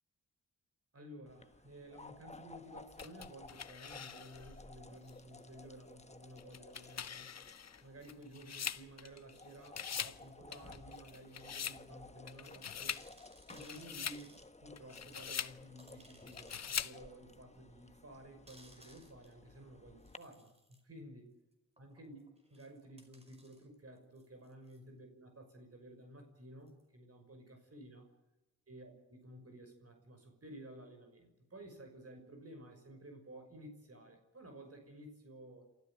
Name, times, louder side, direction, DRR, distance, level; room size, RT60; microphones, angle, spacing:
voice 1, 0.9-7.4 7.8-13.1 13.5-21.3 21.8-22.2 22.5-28.1 28.7-35.7, right 1 dB, 40° right, 5 dB, 6.0 m, -54 dB
sound 1, 1.3-20.2, left 3 dB, 20° left, 1.3 m, -56 dB
sound 2, 3.0-4.5 5.1-5.2 6.4-9.4 9.6-10.2 10.5-11.8 12.3-13.1 13.5-14.2 14.8-15.6 16.3-17.0, left 8 dB, 45° left, 0.9 m, -43 dB
sound 3, 10.0-10.3 11.3-11.4 11.8-11.9 12.2-12.3 12.9-14.5 15.0-15.1 15.8-16.8 17.3-17.4 18.5-19.4 20.0-20.8 21.8-24.8 26.7-26.8, right 1 dB, 15° right, 5.1 m, -63 dB
27.5 x 14.0 x 9.3 m, 0.99 s
cardioid pair, 70°, 36 cm